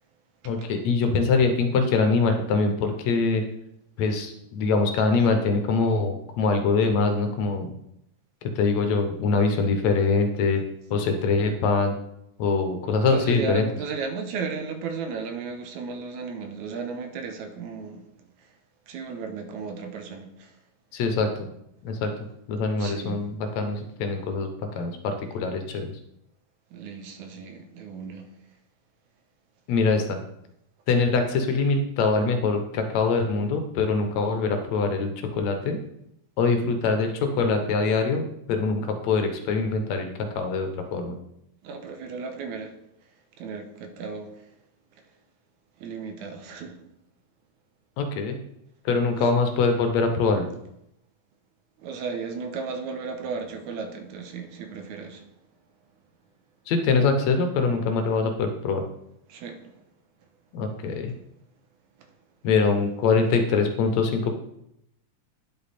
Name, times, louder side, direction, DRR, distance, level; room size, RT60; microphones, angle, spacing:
voice 1, 0.5-3.4 4.0-7.7 8.6-10.6 10.9-11.9 12.4-13.6 20.9-21.3 21.8-22.1 22.5-24.5 24.8-25.9 29.7-30.2 30.9-35.8 36.4-38.2 38.5-40.1 40.4-41.1 48.0-48.4 48.9-50.5 56.7-58.8 60.5-61.1 62.4-64.3, left 4 dB, 70° left, 6 dB, 2.1 m, -23 dB
voice 2, 13.1-18.1 18.9-20.5 22.8-23.2 26.7-28.3 41.6-42.7 43.4-44.3 45.8-46.8 51.8-55.2 59.3-59.7 62.0-62.1, right 5 dB, 85° right, 6 dB, 2.3 m, -34 dB
10.0 x 5.3 x 4.2 m, 0.78 s
omnidirectional pair, 3.3 m